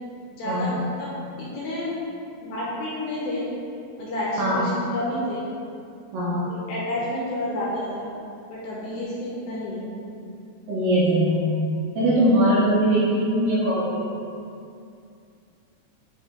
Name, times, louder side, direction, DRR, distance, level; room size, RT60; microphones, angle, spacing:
voice 1, 0.3-1.1 1.4-2.0 2.4-3.4 4.0-5.5 6.5-8.1 8.5-9.9, left 1 dB, 75° left, -6 dB, 2.3 m, -30 dB
voice 2, 10.7-11.4 12.0-14.0, right 1 dB, 70° right, -9 dB, 2.2 m, -21 dB
8.5 x 3.2 x 3.6 m, 2.5 s
omnidirectional pair, 4.8 m